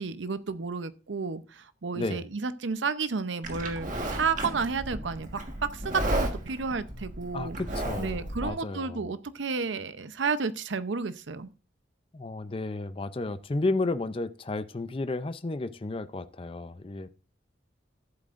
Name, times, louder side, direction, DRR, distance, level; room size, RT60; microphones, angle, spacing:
voice 1, 0.0-7.6 8.0-11.5, right 5 dB, 80° right, 0.7 m, -32 dB
Livestock farm animals working animals, 3.4-8.5, right 1 dB, 45° right, 1.5 m, -33 dB
voice 2, 7.3-9.0 12.1-17.1, left 2 dB, 30° left, 0.5 m, -32 dB
13.5 x 7.7 x 2.5 m
head